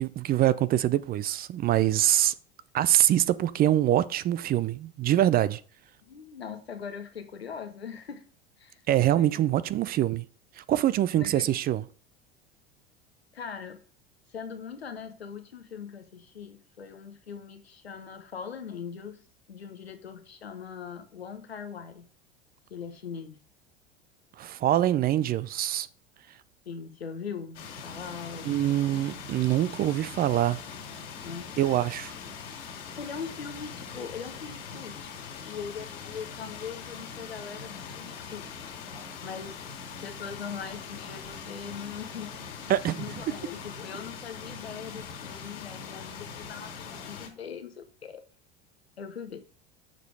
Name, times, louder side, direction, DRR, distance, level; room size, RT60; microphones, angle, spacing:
voice 1, 0.0-2.3 2.7-5.6 8.9-10.3 10.6-11.8 24.4-25.9 28.4-30.6 31.6-32.1 42.7-43.2, right 12 dB, 30° right, 0.4 m, -24 dB
voice 2, 6.0-8.2 8.6-8.8 9.1-9.6 11.1-11.6 13.3-13.8 14.3-19.2 19.5-22.1 22.7-23.4 26.7-28.8 31.2-31.5 33.0-35.1 35.4-38.5 39.2-39.5 40.0-42.3 43.0-48.2 49.0-49.4, left 6 dB, 90° left, 1.0 m, -41 dB
sound 1, 27.5-47.3, left 6 dB, 70° left, 2.4 m, -42 dB
6.7 x 5.1 x 4.6 m
hypercardioid pair, 80°, 30 cm